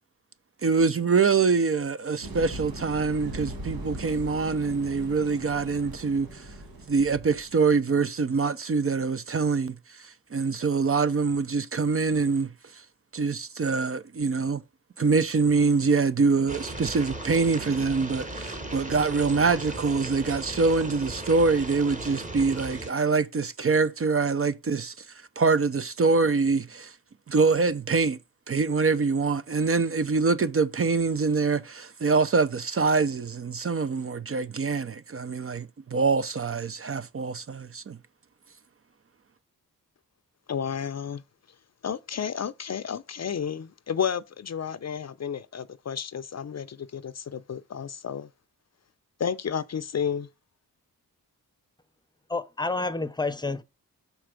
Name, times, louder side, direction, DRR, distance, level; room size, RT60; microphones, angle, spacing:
voice 1, 0.6-6.5 6.9-12.8 13.1-14.6 15.0-27.0 27.3-28.2 28.5-38.0, right 4 dB, 40° right, 0.5 m, -25 dB
sound 1, 2.2-7.7, right 1 dB, 75° right, 1.5 m, -39 dB
sound 2, 16.5-22.9, right 1 dB, 20° right, 1.3 m, -37 dB
voice 2, 40.5-41.2 41.8-48.3 49.2-50.3, left 7 dB, 45° left, 0.5 m, -31 dB
voice 3, 52.3-53.6, left 3 dB, 10° left, 0.7 m, -29 dB
6.0 x 4.4 x 5.0 m
cardioid pair, 60°, 36 cm